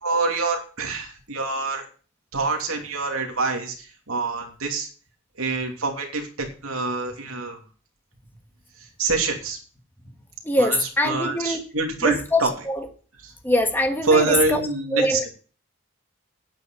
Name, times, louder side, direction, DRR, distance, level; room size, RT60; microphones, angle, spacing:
voice 1, 0.0-1.8 2.3-3.7 4.1-4.9 5.4-6.3 6.6-7.6 9.0-9.6 10.6-10.7 11.0-12.5 14.1-15.3, right 3 dB, 85° right, 3 dB, 2.8 m, -25 dB
voice 2, 10.4-11.6 12.0-12.9 13.4-15.3, left 1 dB, 10° left, 4 dB, 1.6 m, -23 dB
9.8 x 9.1 x 5.7 m, 0.39 s
head